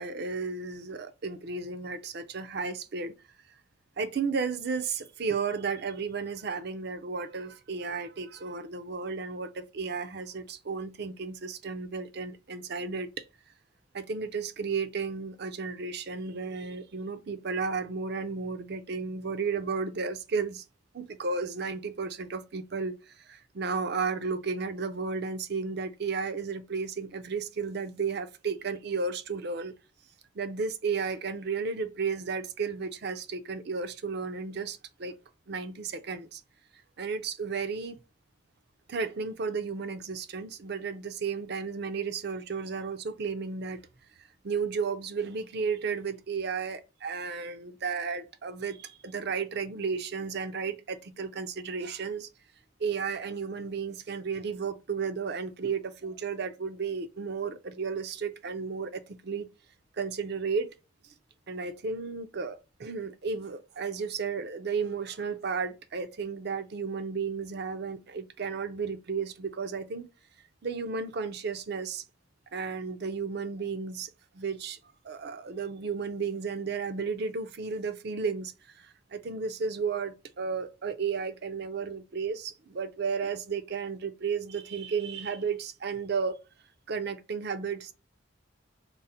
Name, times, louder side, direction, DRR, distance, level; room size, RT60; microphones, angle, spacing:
voice 1, 0.0-3.1 4.0-13.2 13.9-20.6 20.9-29.7 30.3-35.2 35.5-36.4 37.0-38.0 38.9-43.8 44.4-52.3 52.8-59.5 60.0-60.7 61.5-70.0 70.6-72.0 72.5-74.8 75.0-86.4 86.9-87.9, right 5 dB, 50° right, 0.5 m, -33 dB
3.8 x 2.0 x 4.1 m
head